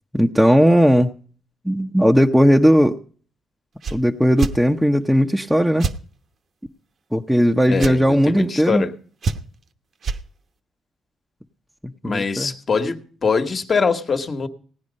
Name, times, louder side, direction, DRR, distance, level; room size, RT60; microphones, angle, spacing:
voice 1, 0.1-1.1 1.6-3.0 3.9-5.9 7.1-8.8 12.0-12.5, equal, ahead, 0.8 m, -17 dB
sound 1, 3.8-4.0 4.4-4.6 5.8-6.0 7.8-8.0 9.2-9.6 10.0-10.2, right 5 dB, 50° right, 1.0 m, -24 dB
voice 2, 7.7-8.9 12.0-14.5, left 5 dB, 40° left, 1.5 m, -23 dB
17.0 x 9.8 x 5.3 m
cardioid pair, 90°, 0 cm